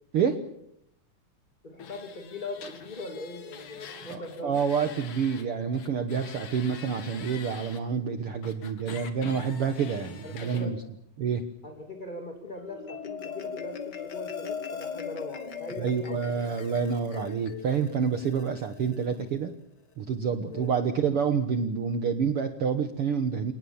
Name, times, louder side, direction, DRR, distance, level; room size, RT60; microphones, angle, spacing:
voice 1, 0.1-0.4 4.1-10.8 11.2-11.4 15.8-19.5 20.0-23.5, right 6 dB, 55° right, 8 dB, 1.9 m, -28 dB
voice 2, 1.6-4.5 10.2-10.8 11.6-16.5 20.4-20.7, left 2 dB, 15° left, 3 dB, 2.8 m, -40 dB
sound 1, 1.8-5.5 5.7-7.8 8.4-10.7, left 7 dB, 75° left, 3.6 m, -45 dB
Marimba xylophone, 12.6-19.2, left 6 dB, 40° left, 1.9 m, -39 dB
28.5 x 19.0 x 7.2 m, 0.76 s
omnidirectional pair, 3.6 m